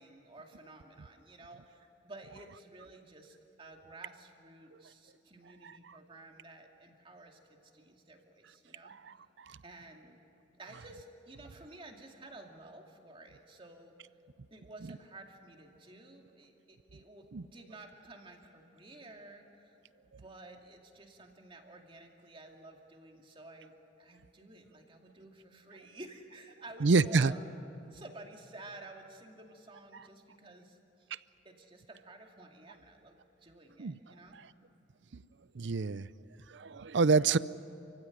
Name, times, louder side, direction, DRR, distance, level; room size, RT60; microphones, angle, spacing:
voice 1, 0.0-8.9 9.6-10.2 10.6-14.0 14.5-19.8 20.2-27.4 27.9-31.1 31.4-34.4, right 2 dB, 30° right, 2 dB, 2.4 m, -52 dB
voice 2, 26.8-27.3 33.8-34.0 35.6-36.1 36.5-37.4, right 4 dB, 75° right, 18 dB, 0.6 m, -26 dB
28.5 x 16.0 x 10.0 m, 3.0 s
head